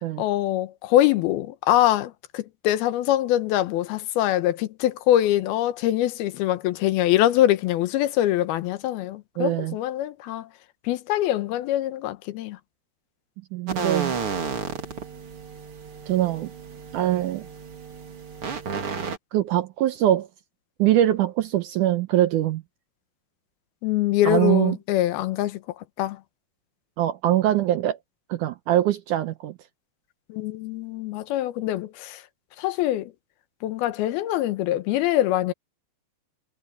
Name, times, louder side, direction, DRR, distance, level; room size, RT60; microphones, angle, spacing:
voice 1, 0.2-10.5 10.8-12.6 23.8-26.2 30.3-32.2 32.6-33.1 33.6-35.5, left 13 dB, 90° left, 3.0 m, -24 dB
voice 2, 9.4-9.8 13.5-14.2 16.1-16.5 16.9-17.5 19.3-20.3 20.8-22.6 24.3-24.8 27.0-28.0 28.3-29.5, right 13 dB, 75° right, 1.9 m, -22 dB
sound 1, 13.7-19.2, right 5 dB, 40° right, 2.9 m, -32 dB
omnidirectional pair, 4.3 m